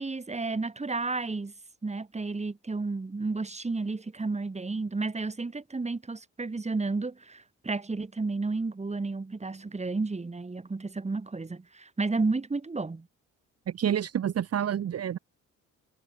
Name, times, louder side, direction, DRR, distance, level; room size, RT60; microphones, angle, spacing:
voice 1, 0.0-1.5 1.8-13.1, right 3 dB, 20° right, 4.7 m, -32 dB
voice 2, 13.7-15.2, right 9 dB, 55° right, 1.7 m, -28 dB
cardioid pair, 90°, 30 cm